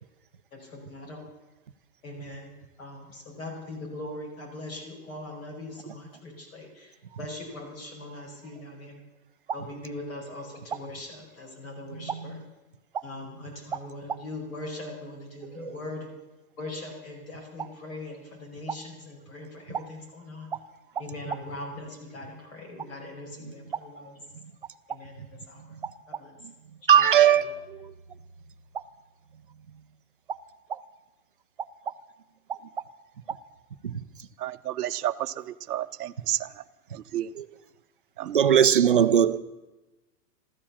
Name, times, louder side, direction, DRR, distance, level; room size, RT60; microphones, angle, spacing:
voice 1, 0.5-1.2 2.0-2.5 2.8-9.0 9.5-12.4 13.0-16.1 16.6-20.5 21.0-24.2 24.9-25.6 26.1-26.3 26.9-27.5, left 2 dB, 60° left, 5.5 m, -41 dB
voice 2, 12.0-12.4 15.6-15.8 26.9-27.6 33.8-33.9 37.4-37.5 38.3-39.4, right 9 dB, 35° right, 0.4 m, -20 dB
voice 3, 34.4-36.5 36.9-37.3 38.2-38.4, right 13 dB, 70° right, 0.8 m, -31 dB
14.5 x 13.5 x 7.2 m
hypercardioid pair, 175°, 47 cm